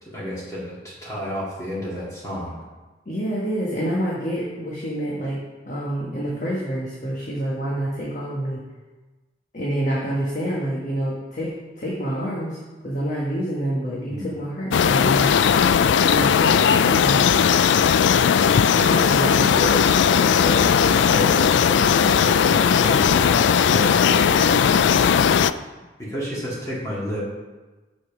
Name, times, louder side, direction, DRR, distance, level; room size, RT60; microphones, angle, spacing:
voice 1, 0.0-2.6 14.0-14.3 18.8-20.1 20.3-25.1 26.0-27.3, equal, 20° left, -7 dB, 2.0 m, -30 dB
voice 2, 3.0-5.4 5.6-8.6 9.5-15.4 16.1-17.2 18.7-19.4, right 1 dB, 45° left, -5 dB, 1.4 m, -27 dB
sound 1, 14.7-25.5, left 7 dB, 85° left, 0.3 m, -17 dB
7.0 x 6.6 x 6.0 m, 1.2 s
head